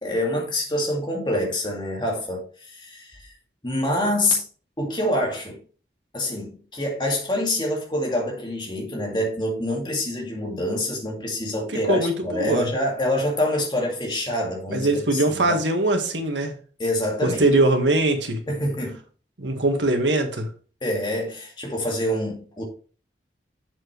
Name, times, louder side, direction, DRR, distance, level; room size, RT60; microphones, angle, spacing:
voice 1, 0.0-3.3 3.6-4.4 4.8-5.6 6.1-15.6 16.8-17.5 18.5-19.0 20.8-22.7, left 1 dB, 25° left, 2.1 m, -26 dB
voice 2, 11.9-12.7 14.7-16.5 17.2-18.4 19.4-20.5, right 2 dB, 85° right, 1.7 m, -21 dB
7.5 x 7.4 x 3.2 m
head